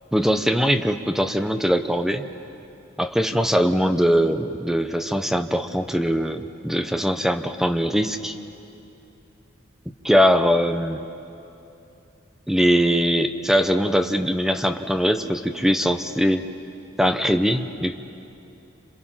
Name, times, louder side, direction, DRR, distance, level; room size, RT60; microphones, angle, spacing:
voice 1, 0.1-2.3 3.0-8.4 10.0-11.0 12.5-16.4 17.0-18.0, equal, ahead, 8 dB, 0.8 m, -21 dB
30.0 x 27.0 x 5.8 m, 2.8 s
head